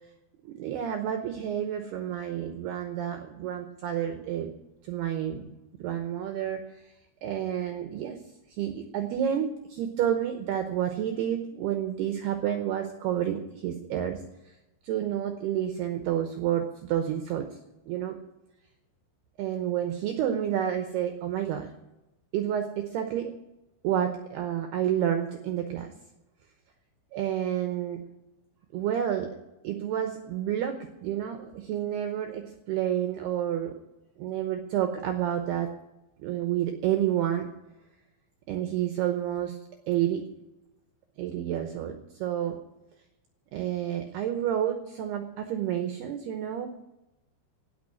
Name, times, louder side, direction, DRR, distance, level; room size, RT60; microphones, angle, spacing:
voice 1, 0.4-4.5 4.8-5.5 5.8-6.9 7.2-8.2 8.5-14.5 14.8-17.5 17.9-18.2 19.4-21.7 22.3-23.3 23.8-25.9 27.1-28.0 28.7-29.3 29.6-33.8 34.2-35.7 36.2-37.5 38.5-39.6 39.9-40.2 41.2-42.6 43.5-46.7, right 10 dB, 80° right, 6 dB, 2.3 m, -30 dB
17.0 x 6.2 x 9.8 m, 0.98 s
omnidirectional pair, 5.8 m